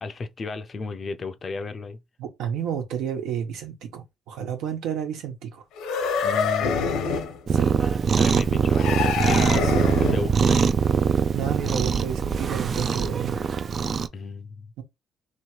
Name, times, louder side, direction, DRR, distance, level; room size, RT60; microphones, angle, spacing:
voice 1, 0.0-2.0 6.2-7.1 7.5-9.5 10.0-10.7 14.1-14.7, left 4 dB, 30° left, 0.5 m, -35 dB
voice 2, 2.2-5.6 7.5-7.7 9.6-10.2 11.3-13.4 14.8-14.9, right 8 dB, 80° right, 1.3 m, -31 dB
sound 1, 5.8-7.4 8.7-10.4, left 6 dB, 90° left, 1.0 m, -26 dB
Cat, 7.5-14.1, right 6 dB, 35° right, 0.3 m, -22 dB
3.1 x 2.9 x 4.5 m
cardioid pair, 155°, 0 cm